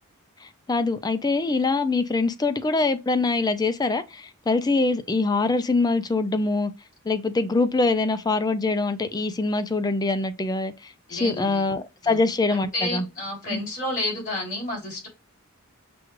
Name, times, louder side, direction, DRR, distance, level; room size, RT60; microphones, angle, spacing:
voice 1, 0.4-6.7 7.1-13.1 13.5-13.6, left 3 dB, 20° left, 0.4 m, -24 dB
voice 2, 11.1-11.6 12.0-12.2 12.5-15.1, left 1 dB, 35° left, 2.8 m, -30 dB
6.1 x 2.4 x 2.9 m
head